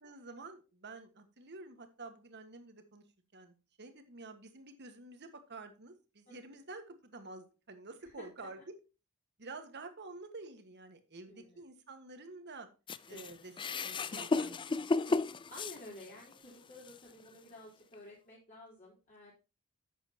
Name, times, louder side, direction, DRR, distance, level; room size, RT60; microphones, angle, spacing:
voice 1, 0.0-3.0 3.3-8.6 9.4-12.7 13.1-13.5 13.8-15.2, right 3 dB, 50° right, 8 dB, 1.6 m, -49 dB
voice 2, 6.3-6.6 8.2-8.6 11.3-11.6 13.1-13.4 15.5-19.3, left 1 dB, 40° left, -7 dB, 3.9 m, -52 dB
sound 1, 12.9-16.3 16.8-17.0 17.9-18.0, left 3 dB, 20° left, 0.4 m, -34 dB
11.5 x 8.0 x 2.9 m, 0.31 s
head